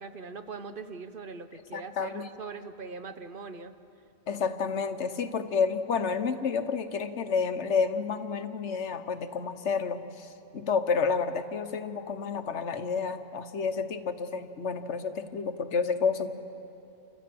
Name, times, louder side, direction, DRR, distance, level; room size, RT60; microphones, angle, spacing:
voice 1, 0.0-3.7, right 4 dB, 50° right, 9 dB, 1.1 m, -41 dB
voice 2, 1.7-2.3 4.3-16.3, left 5 dB, 90° left, 9 dB, 1.3 m, -30 dB
29.0 x 14.5 x 7.7 m, 2.9 s
omnidirectional pair, 1.2 m